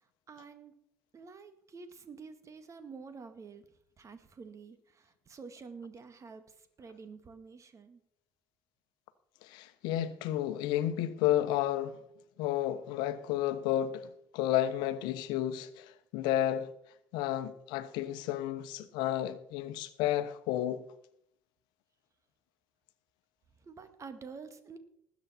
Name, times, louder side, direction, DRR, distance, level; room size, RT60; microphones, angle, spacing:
voice 1, 0.3-0.7 1.1-3.7 4.0-8.0 23.6-24.8, right 5 dB, 40° right, 1.9 m, -48 dB
voice 2, 9.4-12.0 12.4-16.7 17.1-20.8, left 12 dB, 70° left, 1.0 m, -32 dB
19.5 x 8.3 x 4.3 m
hypercardioid pair, 55°, 8 cm